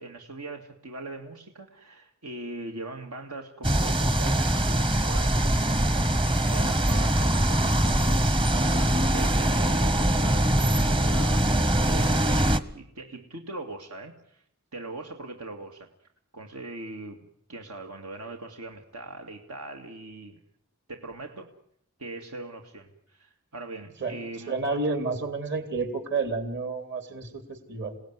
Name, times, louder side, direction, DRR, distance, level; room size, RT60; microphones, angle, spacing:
voice 1, 0.0-5.5 6.2-14.4 14.7-15.9 16.3-20.4 20.9-21.5 22.0-24.6, right 2 dB, 85° right, 3 dB, 2.3 m, -41 dB
sound 1, 3.6-12.6, right 1 dB, 25° right, 1.1 m, -23 dB
voice 2, 24.5-28.0, right 3 dB, 55° right, 7 dB, 3.6 m, -30 dB
28.0 x 18.0 x 9.6 m, 0.69 s
head